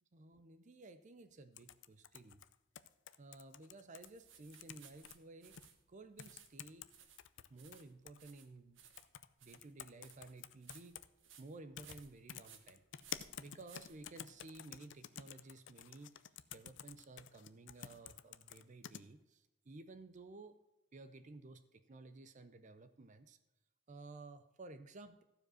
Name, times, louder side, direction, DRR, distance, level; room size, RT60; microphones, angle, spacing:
voice 1, 0.1-2.4 3.2-5.6 5.9-6.9 7.5-8.8 9.4-11.0 11.4-12.8 13.2-20.6 20.9-23.4 23.9-25.2, right 2 dB, 40° right, 10 dB, 0.5 m, -55 dB
sound 1, 1.6-4.1 4.5-5.2 5.6-5.7 6.2-6.9 7.2-8.2 9.0-9.3 9.5-11.1 11.8-12.0 12.3-19.0, left 10 dB, 65° left, 0.5 m, -50 dB
sound 2, 4.0-14.5, right 8 dB, 70° right, 1.2 m, -63 dB
14.5 x 4.9 x 6.2 m, 0.97 s
head